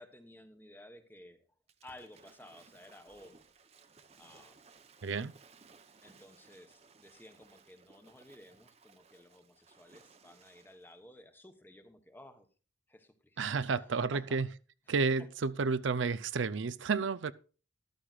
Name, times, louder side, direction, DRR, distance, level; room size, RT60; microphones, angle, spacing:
voice 1, 0.0-1.5 1.8-3.4 4.2-4.6 6.0-12.5 12.9-13.9 14.1-14.4 15.2-15.3, left 1 dB, 10° left, 1.0 m, -55 dB
Waves surf / Splash splatter, 1.7-11.0, right 4 dB, 35° right, 0.8 m, -61 dB
voice 2, 5.0-5.3 13.4-14.5 14.9-17.3, right 4 dB, 85° right, 0.6 m, -31 dB
13.5 x 12.0 x 2.4 m
head